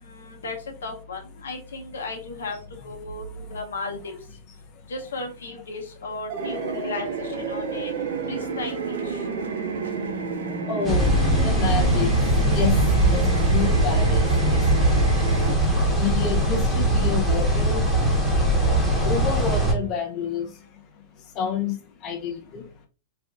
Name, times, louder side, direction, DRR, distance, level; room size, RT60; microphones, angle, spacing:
voice 1, 0.0-0.6 0.8-2.6 2.8-3.2 3.5-4.1 4.9-7.9 8.3-9.3, left 3 dB, 90° left, 3 dB, 0.9 m, -35 dB
sound 1, 6.3-13.7, right 5 dB, 50° right, 0.7 m, -32 dB
sound 2, 6.4-15.5, right 5 dB, 85° right, 0.4 m, -33 dB
voice 2, 10.7-11.1 11.4-12.1 12.5-12.7 13.1-13.2 13.5-14.2 14.5-14.9 16.0-17.8 18.3-18.8 19.0-20.5 21.4-21.8 22.0-22.6, left 7 dB, 35° left, 2 dB, 0.6 m, -28 dB
sound 3, 10.8-19.7, right 1 dB, 5° right, 1.0 m, -21 dB
3.4 x 2.5 x 2.5 m, 0.36 s
hypercardioid pair, 125°, 0 cm